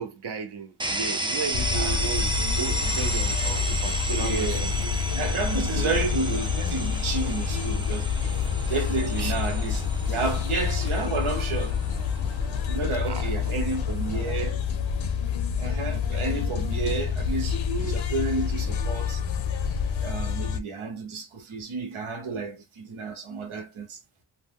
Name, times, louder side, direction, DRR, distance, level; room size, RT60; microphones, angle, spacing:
voice 1, 0.0-4.9 5.7-6.0 9.2-9.3 13.1-13.6 16.8-16.9 17.7-18.0, right 6 dB, 55° right, 0.7 m, -35 dB
sound 1, 0.8-14.5, right 1 dB, 10° right, 0.4 m, -33 dB
sound 2, 1.5-20.6, left 6 dB, 70° left, 0.6 m, -28 dB
voice 2, 1.7-2.0 4.2-4.7 5.1-8.1 8.7-11.8 12.6-14.6 15.6-17.6 17.9-19.2 20.0-24.0, right 3 dB, 85° right, 1.0 m, -31 dB
2.7 x 2.2 x 3.5 m
wide cardioid pair, 120°, 48 cm